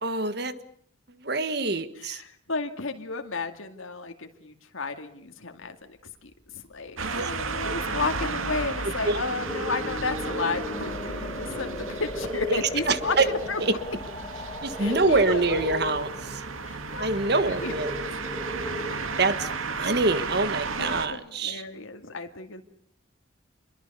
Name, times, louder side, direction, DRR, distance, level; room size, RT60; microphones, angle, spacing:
voice 1, 0.0-0.5 1.2-2.2 7.0-7.3 9.0-9.2 12.5-13.3 13.6-13.7 14.6-16.4 17.0-17.9 19.2-19.5 19.8-21.6, right 3 dB, 50° right, 12 dB, 1.5 m, -25 dB
voice 2, 2.0-13.2 13.5-13.6 14.8-15.6 16.6-17.8 20.8-22.6, left 3 dB, 85° left, 5 dB, 2.3 m, -33 dB
sound 1, 6.7-16.0, left 2 dB, 25° left, 4.6 m, -39 dB
sound 2, 7.0-21.1, right 4 dB, 85° right, 2.2 m, -34 dB
sound 3, 7.6-20.9, left 1 dB, 10° right, 6.5 m, -39 dB
28.0 x 22.5 x 6.9 m, 0.64 s
head